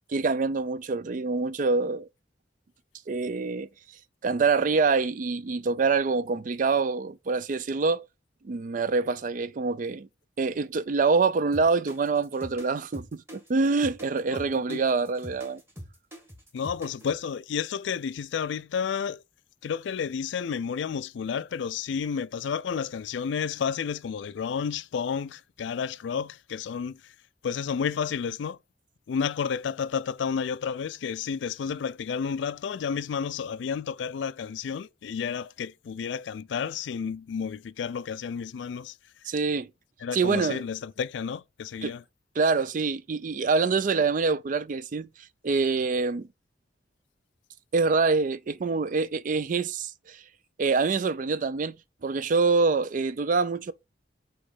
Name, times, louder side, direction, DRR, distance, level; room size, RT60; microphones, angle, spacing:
voice 1, 0.1-2.1 3.1-3.7 4.2-8.0 8.4-10.1 10.4-15.6 39.3-39.7 40.1-40.6 41.8-41.9 42.4-45.1 45.4-46.3 47.7-50.2 50.6-51.8 52.0-53.7, right 4 dB, 45° right, 0.4 m, -25 dB
sound 1, 11.5-17.2, equal, 10° right, 1.5 m, -43 dB
voice 2, 16.5-19.2 19.6-27.1 27.4-28.6 29.1-39.0 40.0-42.0, left 6 dB, 70° left, 0.3 m, -31 dB
6.5 x 3.1 x 5.4 m
head